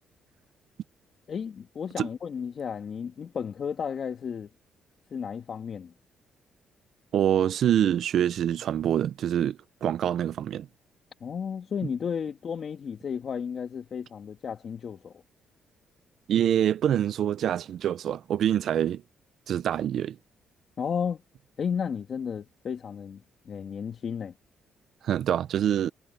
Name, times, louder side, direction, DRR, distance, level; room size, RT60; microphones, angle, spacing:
voice 1, 1.3-4.5 5.1-5.9 11.2-15.2 20.8-21.2 21.6-24.3, left 7 dB, 50° left, 2.2 m, -33 dB
voice 2, 7.1-10.7 16.3-19.0 19.5-20.2 25.0-25.9, right 10 dB, 70° right, 0.5 m, -25 dB
cardioid pair, 90°, 0 cm